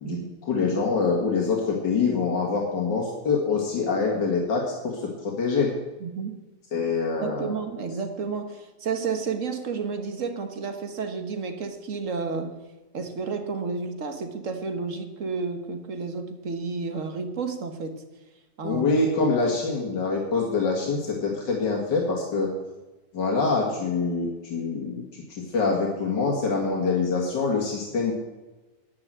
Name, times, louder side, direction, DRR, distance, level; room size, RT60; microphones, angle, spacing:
voice 1, 0.5-5.7 6.7-7.5 18.6-22.5 23.1-28.1, left 4 dB, 90° left, -2 dB, 2.6 m, -25 dB
voice 2, 6.0-6.4 7.2-12.6 12.9-18.0 18.6-18.9 20.4-20.5, right 5 dB, 50° right, 7 dB, 1.6 m, -31 dB
9.8 x 9.7 x 7.6 m, 1.1 s
omnidirectional pair, 1.9 m